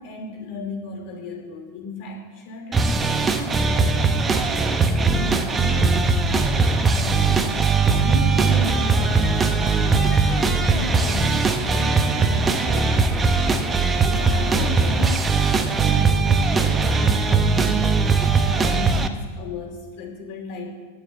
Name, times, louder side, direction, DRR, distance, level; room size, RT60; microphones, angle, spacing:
voice 1, 0.0-6.2 6.7-9.4 9.7-12.9 13.3-13.7 14.0-20.7, left 2 dB, 45° left, 0 dB, 2.8 m, -35 dB
sound 1, 2.7-19.1, right 4 dB, 20° right, 0.9 m, -20 dB
sound 2, 3.2-11.9, left 4 dB, 60° left, 1.7 m, -41 dB
Piano, 8.9-15.4, equal, ahead, 2.8 m, -39 dB
10.5 x 9.7 x 8.1 m, 1.4 s
figure-of-eight pair, 90°, 0 cm